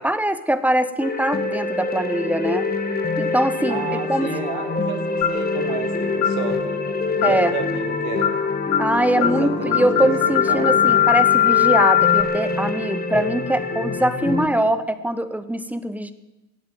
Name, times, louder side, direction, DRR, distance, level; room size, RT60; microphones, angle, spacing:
voice 1, 0.0-2.7 3.2-4.3 7.2-7.5 8.8-16.1, right 1 dB, 5° right, 12 dB, 1.0 m, -22 dB
sound 1, 1.0-14.5, left 4 dB, 20° left, 2.0 m, -25 dB
voice 2, 3.7-6.8 7.2-8.3 9.2-10.8, right 8 dB, 55° right, 8 dB, 2.1 m, -31 dB
sound 2, 5.2-5.5 6.2-6.4 7.2-7.5 8.2-8.4 8.7-8.9 9.2-9.4 9.7-12.2, left 11 dB, 60° left, 2.0 m, -19 dB
16.0 x 8.7 x 9.2 m, 1.0 s
hypercardioid pair, 75°, 46 cm